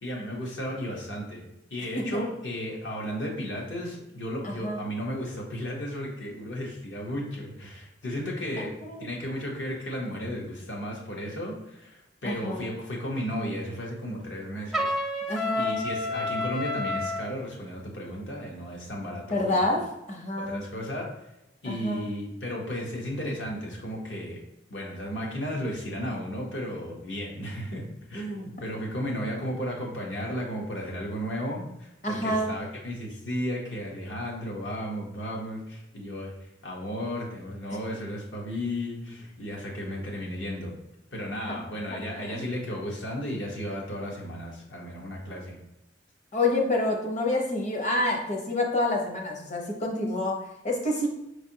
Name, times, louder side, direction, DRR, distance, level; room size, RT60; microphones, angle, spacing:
voice 1, 0.0-1.4 1.7-8.7 9.0-14.9 15.5-19.8 20.4-21.1 21.6-24.4 24.7-36.3 36.6-40.7 41.1-45.6, equal, 75° left, -2 dB, 1.1 m, -34 dB
voice 2, 4.4-4.8 8.9-9.1 12.2-12.7 15.3-15.8 19.3-20.6 21.6-22.2 32.0-32.5 42.2-42.5 46.3-51.1, left 2 dB, 40° left, 1 dB, 0.8 m, -28 dB
Trumpet, 14.7-17.3, left 2 dB, ahead, 0.4 m, -29 dB
5.1 x 3.3 x 2.8 m, 0.87 s
head